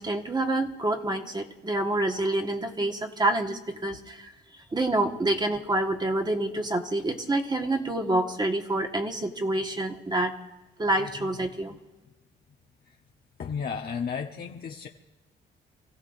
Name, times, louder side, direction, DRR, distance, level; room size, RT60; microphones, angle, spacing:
voice 1, 0.0-10.4 10.8-11.8, right 2 dB, 20° right, 3 dB, 1.6 m, -27 dB
voice 2, 11.0-11.3 13.4-14.9, left 6 dB, 50° left, 0 dB, 1.1 m, -33 dB
28.5 x 15.5 x 2.6 m, 1.1 s
cardioid pair, 90°, 20 cm